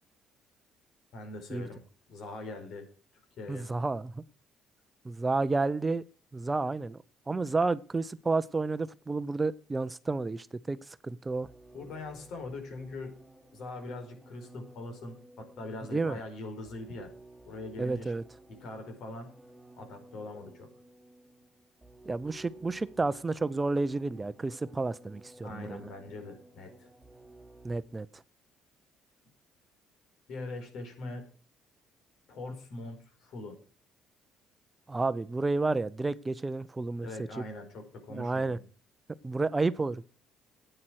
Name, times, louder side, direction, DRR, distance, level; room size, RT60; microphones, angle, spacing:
voice 1, 1.1-1.8 2.1-2.9 3.4-3.7 11.7-13.2 13.5-17.1 17.4-18.1 18.6-19.3 19.8-20.7 25.4-26.9 30.3-31.2 32.3-33.6 37.0-38.6, left 2 dB, 70° left, 5 dB, 4.7 m, -42 dB
voice 2, 3.5-4.2 5.0-6.0 6.3-7.0 7.3-11.5 15.9-16.2 17.8-18.2 22.1-25.8 27.6-28.2 34.9-37.1 37.4-37.5 38.1-38.6 39.2-40.0, right 3 dB, 20° right, 15 dB, 0.6 m, -31 dB
sound 1, 11.4-28.1, right 2 dB, 5° left, 4.0 m, -55 dB
11.0 x 8.9 x 6.3 m, 0.38 s
cardioid pair, 90°, 0 cm